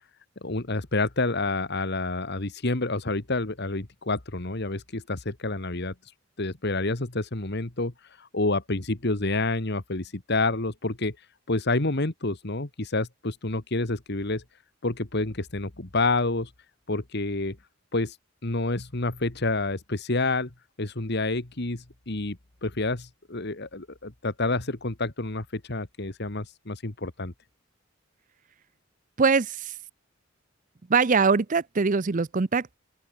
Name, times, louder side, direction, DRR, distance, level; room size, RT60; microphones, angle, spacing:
voice 1, 0.4-5.9 6.4-7.9 8.2-11.2 11.5-14.4 14.8-16.5 16.9-17.6 17.9-18.2 18.4-20.5 20.8-27.3, left 2 dB, 55° left, 1.9 m, -28 dB
voice 2, 29.2-29.7 30.9-32.7, right 5 dB, 40° right, 0.6 m, -22 dB
open air
head